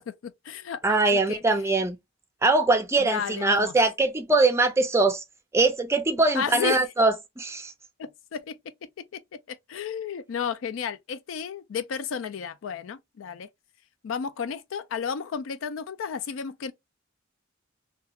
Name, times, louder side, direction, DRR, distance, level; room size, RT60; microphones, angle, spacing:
voice 1, 0.0-1.4 3.0-3.8 6.3-6.8 8.0-13.5 14.0-16.7, left 7 dB, 85° left, 0.4 m, -33 dB
voice 2, 0.8-2.0 2.4-5.2 5.5-7.7, right 3 dB, 15° right, 0.4 m, -22 dB
2.4 x 2.3 x 2.8 m
head